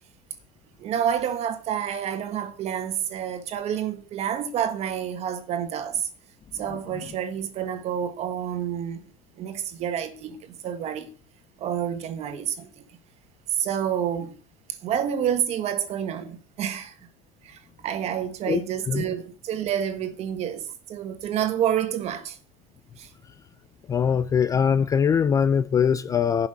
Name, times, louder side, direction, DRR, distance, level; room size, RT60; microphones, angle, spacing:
voice 1, 0.8-6.1 6.5-9.0 9.4-11.1 11.6-12.8 13.5-14.4 14.7-16.9 17.4-22.4 23.0-23.1, right 9 dB, 40° right, 1.5 m, -29 dB
voice 2, 23.9-26.5, left 7 dB, 20° left, 0.4 m, -22 dB
11.0 x 5.8 x 7.8 m
cardioid pair, 150°, 17 cm